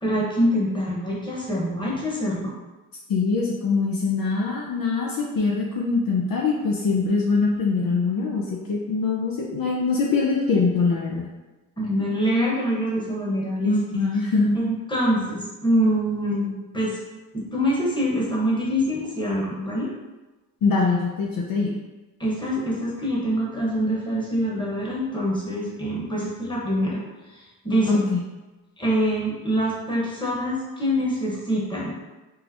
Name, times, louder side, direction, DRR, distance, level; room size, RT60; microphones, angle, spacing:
voice 1, 0.0-2.5 11.8-13.8 14.5-17.0 17.3-19.9 22.2-27.0 27.3-28.1 28.8-31.9, equal, 10° left, -5 dB, 1.2 m, -25 dB
voice 2, 3.1-11.3 13.6-14.6 20.6-21.7 27.9-28.2, left 4 dB, 55° left, -2 dB, 0.6 m, -23 dB
3.8 x 2.0 x 2.9 m, 1.1 s
supercardioid pair, 60°, 40 cm